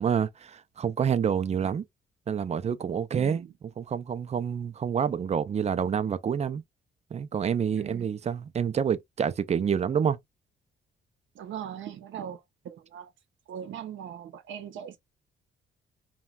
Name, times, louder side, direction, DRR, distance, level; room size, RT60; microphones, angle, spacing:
voice 1, 0.0-1.8 2.3-3.5 3.8-6.6 7.1-10.2, right 7 dB, 35° right, 0.4 m, -28 dB
voice 2, 3.1-3.5 7.7-8.2 11.3-13.1 13.5-15.0, right 9 dB, 70° right, 0.7 m, -40 dB
3.0 x 2.2 x 2.2 m
cardioid pair, 90°, 20 cm